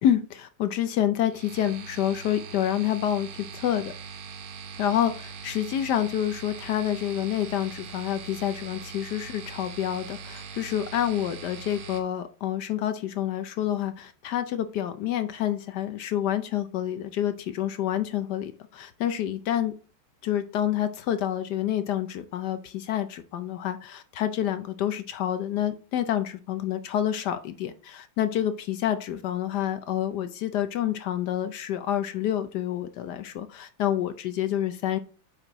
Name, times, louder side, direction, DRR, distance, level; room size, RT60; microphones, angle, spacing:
voice 1, 0.0-3.9 4.8-19.7 20.2-35.0, left 11 dB, 75° left, 10 dB, 0.9 m, -28 dB
sound 1, 1.3-12.0, right 6 dB, 70° right, 1.9 m, -41 dB
8.8 x 6.2 x 3.0 m, 0.36 s
omnidirectional pair, 2.4 m